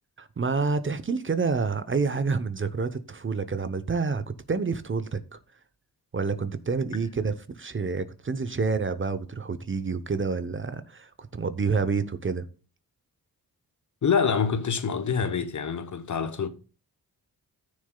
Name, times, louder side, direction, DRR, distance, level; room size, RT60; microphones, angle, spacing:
voice 1, 0.2-5.4 6.1-12.4, right 4 dB, 30° right, 0.8 m, -28 dB
voice 2, 14.0-16.5, left 6 dB, 50° left, 1.0 m, -26 dB
15.0 x 6.5 x 2.3 m
cardioid pair, 65°, 38 cm